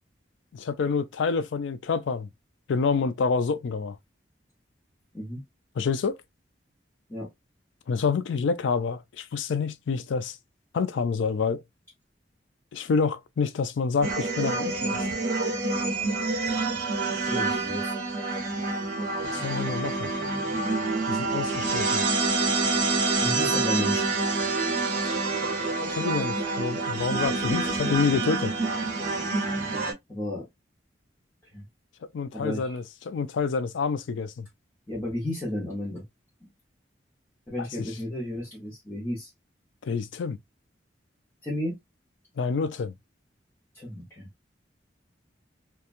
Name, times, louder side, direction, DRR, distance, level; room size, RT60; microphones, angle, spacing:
voice 1, 0.5-2.3 2.7-4.0 5.8-6.2 7.9-10.4 10.7-11.6 12.7-15.1 19.2-20.1 21.1-22.0 25.9-28.5 32.1-34.5 39.8-40.4 42.4-42.9, left 5 dB, 85° left, 0.4 m, -27 dB
sound 1, 14.0-29.9, right 3 dB, 40° right, 0.9 m, -27 dB
voice 2, 17.0-17.9 23.2-24.3 30.1-30.5 31.5-31.6 32.3-32.8 34.9-36.0 36.4-36.5 37.5-39.3 41.4-41.8 43.7-44.3, left 1 dB, 15° left, 0.8 m, -33 dB
2.9 x 2.3 x 2.4 m
head